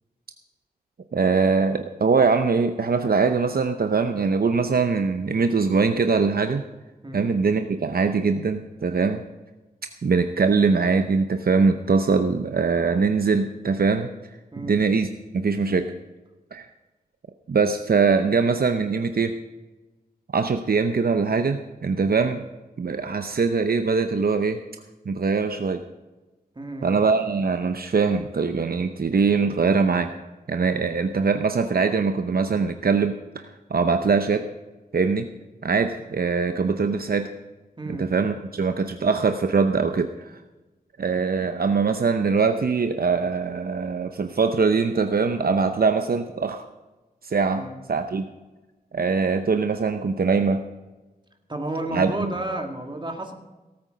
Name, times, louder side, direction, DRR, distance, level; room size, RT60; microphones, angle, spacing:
voice 1, 1.1-6.6 7.1-9.2 10.0-14.1 14.6-15.1 15.3-15.9 16.5-16.7 17.5-19.3 20.3-22.4 22.8-24.6 25.1-25.8 26.8-30.1 30.5-33.2 33.7-34.5 34.9-35.3 35.6-37.3 37.9-40.4 41.0-46.6 47.2-47.6 47.9-48.3 48.9-50.6 51.9-52.3, right 4 dB, 70° right, 7 dB, 0.7 m, -22 dB
voice 2, 26.6-26.9 37.8-38.1 47.6-47.8 51.5-53.3, right 1 dB, 30° right, 4 dB, 2.1 m, -31 dB
17.5 x 8.9 x 5.1 m, 1.1 s
wide cardioid pair, 85°, 16 cm